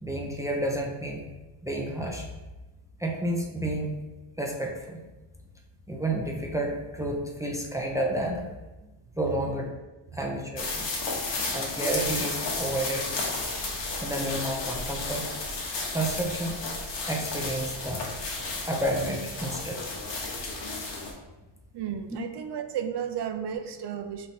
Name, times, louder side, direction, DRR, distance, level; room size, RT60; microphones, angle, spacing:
voice 1, 0.0-1.2 1.6-2.3 3.0-3.9 4.4-5.0 5.9-8.5 9.2-9.7 10.1-10.9 11.5-13.1 14.0-15.3 15.9-16.5 17.0-18.1 18.6-19.8, right 1 dB, 5° right, 0 dB, 0.7 m, -30 dB
sound 1, 10.6-21.1, left 3 dB, 65° left, 1.2 m, -33 dB
voice 2, 21.7-24.3, right 8 dB, 60° right, 8 dB, 0.6 m, -33 dB
4.0 x 3.2 x 4.2 m, 1.1 s
cardioid pair, 95°, 47 cm